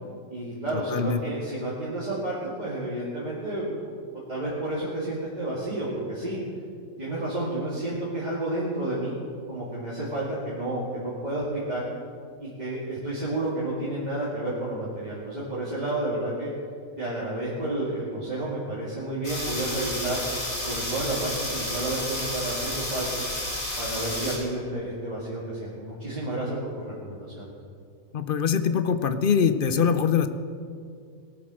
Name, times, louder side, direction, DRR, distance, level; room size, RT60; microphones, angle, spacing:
voice 1, 0.3-3.9 4.3-6.4 7.0-9.2 9.5-11.9 12.4-16.5 17.0-20.2 20.6-23.2 23.8-27.5, right 1 dB, 30° right, -8 dB, 2.5 m, -31 dB
sound 1, 19.2-24.4, left 1 dB, 70° left, 4.2 m, -31 dB
voice 2, 28.1-30.3, left 7 dB, 50° left, 11 dB, 0.8 m, -23 dB
18.0 x 8.8 x 6.3 m, 2.3 s
omnidirectional pair, 1.5 m